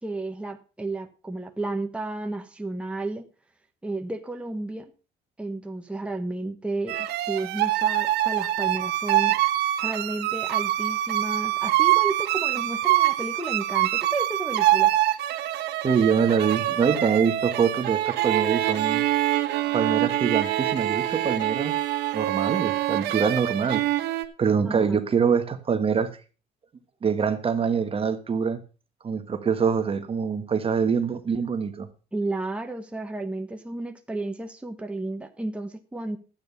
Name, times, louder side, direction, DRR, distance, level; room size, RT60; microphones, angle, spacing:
voice 1, 0.0-3.3 3.8-4.9 5.4-9.4 9.8-14.9 24.6-25.0 32.1-36.2, right 2 dB, 5° right, 5 dB, 1.2 m, -32 dB
sound 1, 6.9-24.2, right 14 dB, 80° right, 1.3 m, -25 dB
voice 2, 15.8-19.1 19.7-21.8 22.1-23.8 24.4-26.2 27.0-28.6 29.0-31.9, right 6 dB, 35° right, 9 dB, 1.3 m, -24 dB
12.0 x 8.9 x 5.4 m, 0.34 s
cardioid pair, 110°, 17 cm